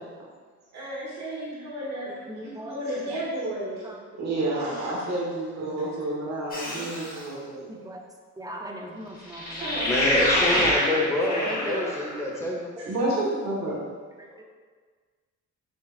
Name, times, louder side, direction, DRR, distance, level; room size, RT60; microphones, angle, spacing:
voice 1, 0.7-2.1 2.4-3.9 4.2-7.7 9.5-10.1 12.8-13.8, right 1 dB, 65° right, -6 dB, 1.5 m, -30 dB
voice 2, 2.1-3.2 3.8-4.0 4.5-4.9 5.6-6.0 6.5-6.6 7.7-8.0 8.4-11.8 14.2-14.4, right 1 dB, 10° right, 1 dB, 0.4 m, -40 dB
sound 1, 6.5-7.2 9.3-12.2, left 1 dB, 30° left, 1.1 m, -26 dB
voice 3, 9.8-12.7 14.3-14.4, left 1 dB, 10° left, -3 dB, 0.8 m, -27 dB
6.1 x 2.3 x 2.4 m, 1.5 s
cardioid pair, 90°, 30 cm